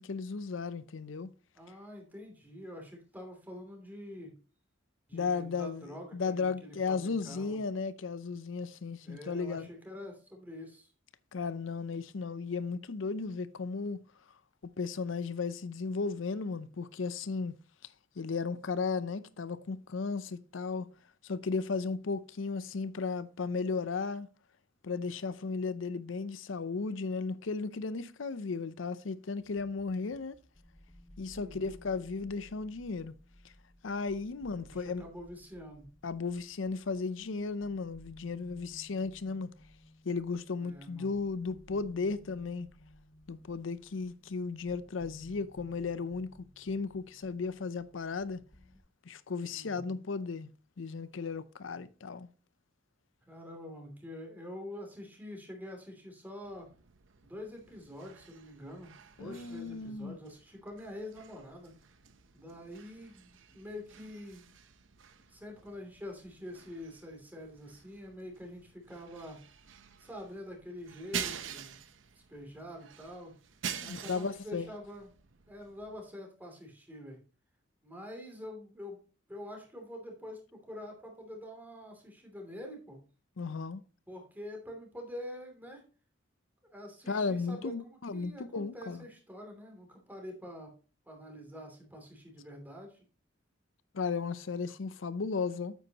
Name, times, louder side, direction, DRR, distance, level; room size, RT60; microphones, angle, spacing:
voice 1, 0.0-1.3 5.1-5.8 6.1-9.7 11.3-14.0 14.8-17.5 18.2-20.9 21.2-24.3 24.8-30.3 31.2-33.1 33.8-35.0 36.0-39.5 40.1-42.7 43.3-48.4 49.1-50.5 50.8-52.3 59.2-60.2 73.8-74.7 83.4-83.8 87.1-89.1 93.9-95.7, left 4 dB, 80° left, 0.6 m, -35 dB
voice 2, 1.5-4.3 5.1-7.6 9.0-10.9 31.3-31.8 34.5-35.9 40.6-41.2 49.5-50.0 53.3-56.7 57.2-58.9 59.2-61.7 62.3-64.5 65.3-69.4 70.0-71.8 72.3-73.3 73.8-75.1 75.5-77.2 77.8-79.0 79.3-83.0 84.1-85.8 86.7-90.7 91.1-93.0, left 1 dB, 10° right, 2.9 m, -46 dB
sound 1, 29.4-48.8, equal, 15° left, 1.3 m, -58 dB
sound 2, 56.4-76.1, right 8 dB, 75° right, 0.8 m, -47 dB
9.2 x 8.0 x 2.9 m
head